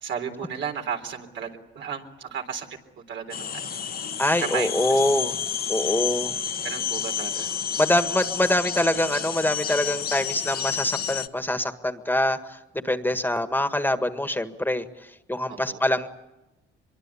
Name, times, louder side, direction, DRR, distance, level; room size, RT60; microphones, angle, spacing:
voice 1, 0.0-2.7 3.0-3.6 4.4-4.7 6.6-7.5 15.5-15.8, right 7 dB, 70° right, 4 dB, 3.8 m, -33 dB
sound 1, 3.3-11.3, left 8 dB, 50° left, 1.3 m, -30 dB
voice 2, 4.2-5.4 5.7-6.3 7.8-12.6 12.8-14.9 15.3-16.1, left 1 dB, 10° left, 8 dB, 1.7 m, -24 dB
24.5 x 22.5 x 8.6 m, 0.98 s
cardioid pair, 90°, 20 cm